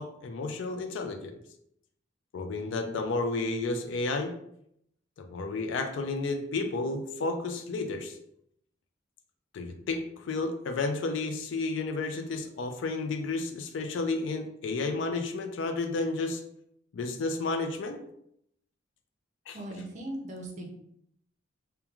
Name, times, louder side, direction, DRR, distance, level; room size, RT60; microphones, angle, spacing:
voice 1, 0.0-1.4 2.3-4.3 5.2-8.2 9.5-16.4 16.9-18.0 19.5-19.6, left 3 dB, 75° left, 6 dB, 0.3 m, -32 dB
voice 2, 19.5-20.7, right 1 dB, 40° right, 1 dB, 0.5 m, -38 dB
2.9 x 2.2 x 2.3 m, 0.74 s
head